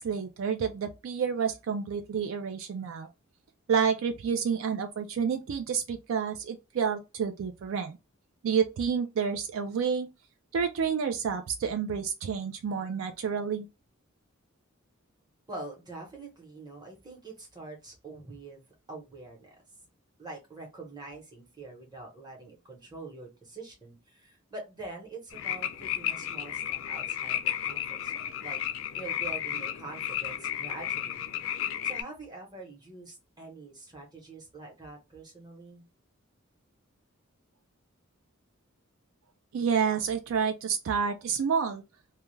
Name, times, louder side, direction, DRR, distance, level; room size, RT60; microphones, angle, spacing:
voice 1, 0.0-3.1 3.7-8.0 8.4-10.1 10.5-13.7 39.5-41.8, right 6 dB, 70° right, 0.3 m, -29 dB
voice 2, 15.5-19.5 20.2-31.3 31.8-35.8, right 2 dB, 20° right, 0.9 m, -45 dB
sound 1, 25.3-32.0, left 10 dB, 65° left, 0.4 m, -33 dB
2.3 x 2.2 x 3.0 m
head